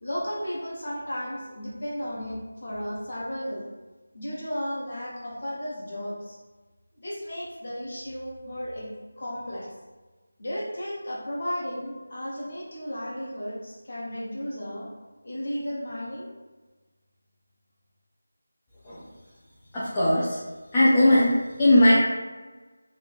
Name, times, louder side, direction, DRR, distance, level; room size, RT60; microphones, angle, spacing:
voice 1, 0.0-3.7 4.1-6.4 7.0-8.9 9.2-9.7 10.4-14.9 15.2-16.3, equal, 35° left, -6 dB, 0.9 m, -34 dB
voice 2, 19.7-20.4 20.7-21.9, left 1 dB, 10° left, -11 dB, 0.3 m, -19 dB
3.1 x 2.4 x 4.1 m, 1.2 s
figure-of-eight pair, 180°, 0 cm